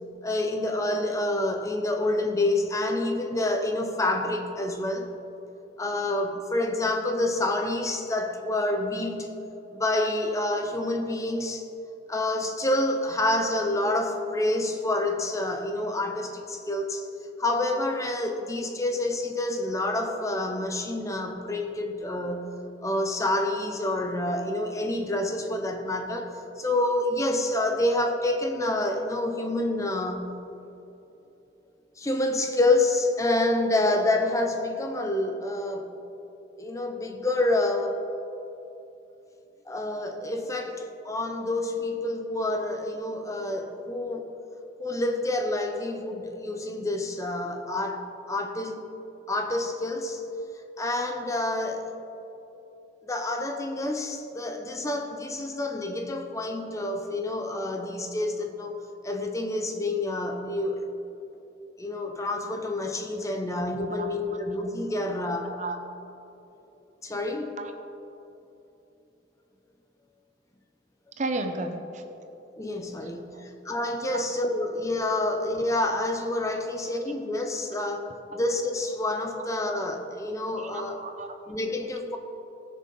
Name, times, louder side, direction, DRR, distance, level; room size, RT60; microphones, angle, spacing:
voice 1, 0.2-5.1 5.8-9.3 9.7-11.7 12.1-17.1 17.4-22.5 22.8-30.3 32.0-35.9 36.6-38.0 39.7-44.3 44.8-48.9 49.3-50.2 50.8-52.0 53.0-60.8 61.8-65.6 67.0-67.6 72.6-78.1 78.3-81.0 81.5-82.2, left 2 dB, 15° left, 4 dB, 0.6 m, -28 dB
voice 2, 64.0-64.4 65.4-65.8 67.6-67.8 71.2-72.1 73.0-73.5 74.1-74.2 80.6-81.4, right 2 dB, 40° right, 6 dB, 0.8 m, -34 dB
18.5 x 6.5 x 4.0 m, 2.9 s
head